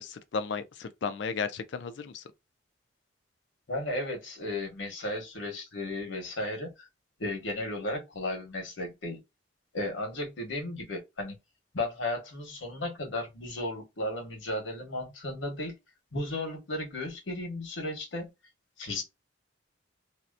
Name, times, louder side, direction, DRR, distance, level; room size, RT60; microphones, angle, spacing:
voice 1, 0.0-2.2, left 5 dB, 65° left, 0.4 m, -34 dB
voice 2, 3.7-6.9 7.2-9.2 9.7-11.4 11.7-15.7 16.1-18.3 18.8-19.0, left 1 dB, 85° left, 1.1 m, -34 dB
2.7 x 2.0 x 2.4 m
head